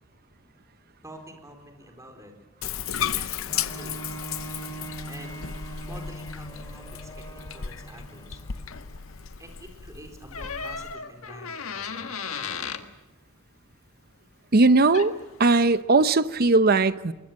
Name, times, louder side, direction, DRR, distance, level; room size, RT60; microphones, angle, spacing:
voice 1, 1.0-2.3 3.0-4.2 5.1-5.4 5.8-8.4 9.4-12.3, right 1 dB, 15° right, 3 dB, 4.4 m, -47 dB
Bathtub (filling or washing), 2.6-11.0, left 8 dB, 70° left, 0.7 m, -35 dB
Bowed string instrument, 3.5-9.1 9.7-9.8, right 1 dB, 20° left, 2.7 m, -41 dB
Door, 10.3-12.9 14.7-14.8 14.9-15.3, left 6 dB, 85° left, 1.5 m, -35 dB
voice 2, 14.5-15.1 15.4-17.1, right 3 dB, 45° right, 13 dB, 0.8 m, -19 dB
24.0 x 21.5 x 7.6 m, 1.1 s
head